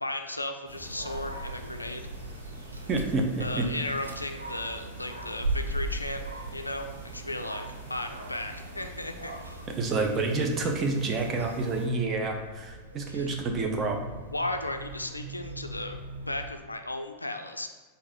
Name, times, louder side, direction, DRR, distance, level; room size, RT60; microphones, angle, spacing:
voice 1, 0.0-2.0 3.4-6.2 6.5-9.6 13.1-13.4 14.3-16.0 16.3-17.7, left 2 dB, 85° left, 6 dB, 0.3 m, -35 dB
sound 1, 0.7-11.9, right 1 dB, 50° right, 1.4 m, -46 dB
Dog, 0.8-16.5, right 2 dB, 85° right, 0.4 m, -39 dB
voice 2, 2.9-3.6 9.8-14.0, right 3 dB, 25° right, 3 dB, 0.6 m, -28 dB
4.0 x 2.6 x 4.2 m, 1.4 s
figure-of-eight pair, 90°, 0 cm